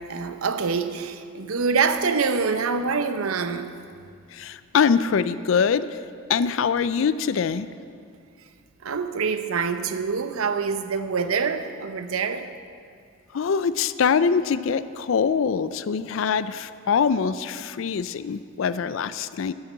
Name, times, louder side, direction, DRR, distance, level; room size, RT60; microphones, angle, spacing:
voice 1, 0.0-3.8 8.8-12.5, right 5 dB, 90° right, 10 dB, 0.7 m, -25 dB
voice 2, 4.3-5.9 6.3-7.7 13.3-19.5, left 6 dB, 65° left, 14 dB, 0.4 m, -23 dB
13.0 x 6.4 x 7.3 m, 2.3 s
head